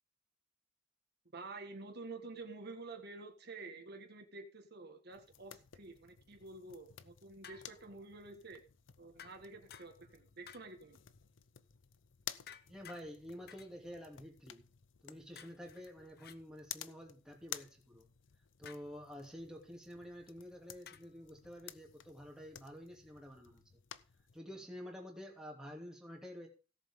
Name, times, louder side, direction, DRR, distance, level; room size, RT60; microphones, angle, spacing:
voice 1, 1.3-8.6 9.0-11.0, right 3 dB, 60° right, 4 dB, 1.6 m, -49 dB
sound 1, 5.1-24.4, left 11 dB, 85° left, 0.7 m, -54 dB
sound 2, 7.4-8.0 9.2-10.2 10.5-10.9 12.5-13.0 13.5-13.7 15.4-16.4 18.7-19.0 20.9-21.2, left 8 dB, 55° left, 0.8 m, -56 dB
voice 2, 12.7-14.6 15.0-18.1 18.6-23.6 24.3-26.5, equal, 5° right, -1 dB, 2.7 m, -49 dB
17.0 x 7.5 x 3.7 m, 0.34 s
head